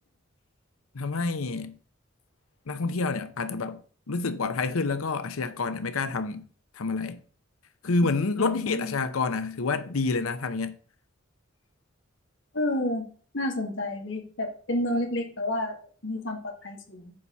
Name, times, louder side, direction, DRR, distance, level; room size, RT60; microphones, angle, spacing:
voice 1, 0.9-1.7 2.7-3.8 4.1-6.5 6.8-7.2 7.8-10.7, left 3 dB, 85° left, 0.7 m, -28 dB
voice 2, 8.4-9.0 12.5-13.0 13.3-15.8 16.0-17.1, left 1 dB, 65° left, 2.0 m, -30 dB
9.5 x 4.2 x 7.0 m
head